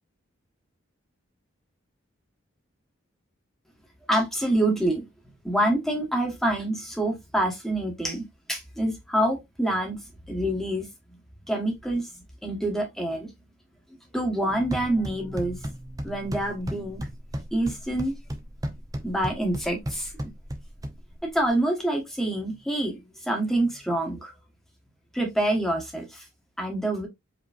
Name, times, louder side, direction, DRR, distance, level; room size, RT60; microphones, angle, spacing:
voice 1, 4.1-5.0 5.4-10.0 10.3-10.9 11.5-12.0 12.4-13.3 14.1-15.6 16.0-17.0 17.5-18.1 19.0-20.1 21.3-22.9 23.3-24.3 25.1-26.0 26.6-27.1, right 1 dB, ahead, 1.1 m, -26 dB
sound 1, 14.5-21.5, equal, 20° right, 0.6 m, -36 dB
5.0 x 3.0 x 2.4 m
head